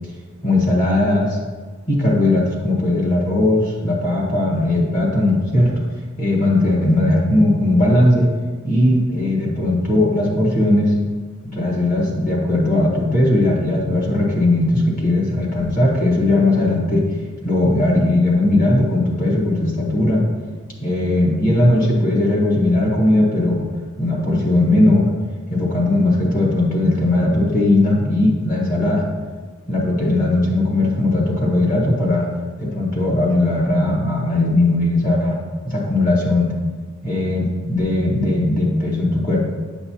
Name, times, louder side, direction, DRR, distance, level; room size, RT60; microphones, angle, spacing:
voice 1, 0.4-1.4 1.9-5.7 6.2-8.3 8.6-10.9 11.4-17.0 17.4-20.2 20.8-23.7 24.0-25.1 25.5-29.1 29.7-32.3 32.6-35.4 35.6-36.5 37.0-39.4, left 1 dB, 45° left, -2 dB, 1.5 m, -18 dB
8.5 x 5.5 x 2.9 m, 1.5 s
head